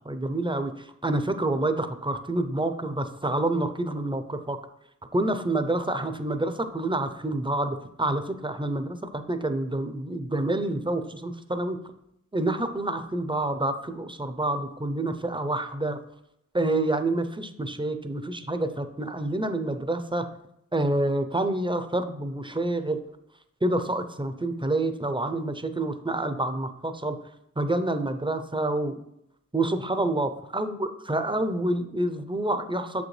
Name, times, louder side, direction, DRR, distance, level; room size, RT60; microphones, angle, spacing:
voice 1, 0.0-4.6 5.1-11.8 12.3-16.0 16.5-20.3 20.7-23.0 23.6-27.2 27.6-29.0 29.5-33.0, right 2 dB, 15° right, 9 dB, 0.6 m, -28 dB
6.7 x 5.1 x 3.2 m, 0.81 s
cardioid pair, 50°, 32 cm